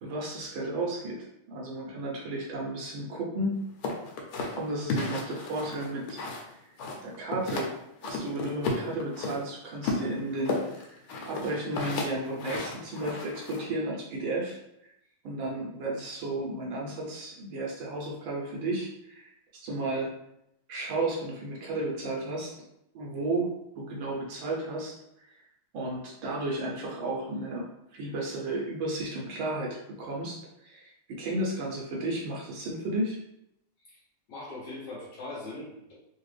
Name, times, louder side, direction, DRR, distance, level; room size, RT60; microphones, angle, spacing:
voice 1, 0.0-3.6 4.5-6.7 7.0-7.7 8.0-11.0 11.3-14.6 15.2-19.3 19.5-20.1 20.7-22.5 22.9-25.0 25.3-25.4 25.7-30.9 31.2-33.2, right 2 dB, 70° right, -3 dB, 1.4 m, -33 dB
sound 1, 3.8-6.5 6.8-7.7 8.0-9.4 9.8-13.6, left 3 dB, 80° left, 1.5 m, -33 dB
voice 2, 34.3-35.9, left 2 dB, 60° left, -5 dB, 1.2 m, -40 dB
3.8 x 2.4 x 3.2 m, 0.81 s
omnidirectional pair, 2.4 m